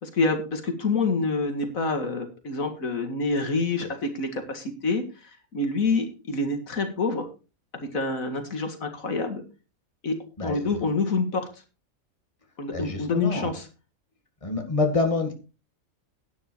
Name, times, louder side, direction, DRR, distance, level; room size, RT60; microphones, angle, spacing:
voice 1, 0.0-5.0 5.5-7.3 7.7-9.4 10.0-10.2 10.4-11.4 12.6-13.6, left 3 dB, 75° left, 6 dB, 2.4 m, -27 dB
voice 2, 10.4-10.9 12.7-13.5 14.4-15.3, left 3 dB, 25° left, 4 dB, 2.1 m, -27 dB
11.5 x 9.7 x 4.6 m, 0.32 s
omnidirectional pair, 1.4 m